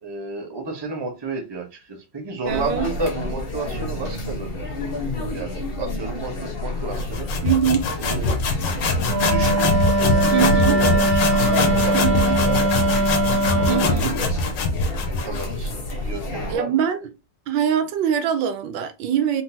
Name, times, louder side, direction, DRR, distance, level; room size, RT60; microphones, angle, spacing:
voice 1, 0.0-7.3 8.0-8.4 9.3-9.7 10.0-11.3 11.8-13.0 13.5-14.3 15.2-16.8, right 3 dB, 20° right, 0.8 m, -32 dB
sound 1, 2.4-16.6, left 2 dB, 40° left, 1.0 m, -29 dB
voice 2, 2.5-2.9 7.4-7.9 10.3-10.8 11.9-12.4 13.7-14.1 16.5-17.1 17.5-19.4, right 8 dB, 85° right, 1.4 m, -23 dB
sound 2, 6.9-15.5, left 3 dB, 80° left, 1.6 m, -23 dB
Wind instrument woodwind instrument, 9.1-14.0, right 1 dB, 60° right, 1.6 m, -21 dB
4.3 x 3.7 x 2.8 m
omnidirectional pair, 2.0 m